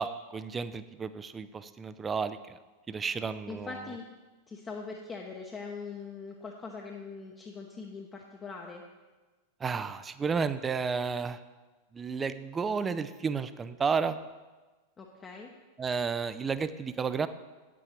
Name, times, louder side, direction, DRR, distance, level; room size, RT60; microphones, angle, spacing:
voice 1, 0.0-2.6 2.9-3.7 9.6-11.4 11.9-14.2 15.8-17.3, right 5 dB, 20° right, 13 dB, 0.5 m, -32 dB
voice 2, 3.5-4.1 4.5-8.8 15.0-15.5, left 4 dB, 20° left, 1 dB, 0.9 m, -42 dB
9.7 x 8.4 x 4.4 m, 1.2 s
figure-of-eight pair, 90°, 0 cm